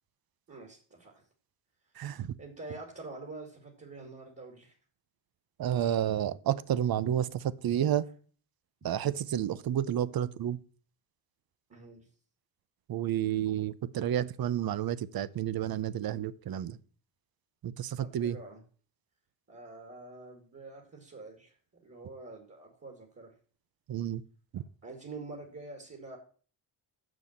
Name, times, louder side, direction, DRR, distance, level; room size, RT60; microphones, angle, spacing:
voice 1, 0.5-1.2 2.4-4.7 11.7-12.1 18.0-18.6 19.5-21.5 21.8-23.3 24.8-26.2, right 3 dB, 30° right, 2.3 m, -46 dB
voice 2, 2.0-2.3 5.6-8.0 8.8-10.6 12.9-16.8 17.6-18.4 23.9-24.2 24.5-24.6, right 10 dB, 50° right, 0.7 m, -30 dB
7.0 x 6.2 x 7.3 m
cardioid pair, 115°, 45 cm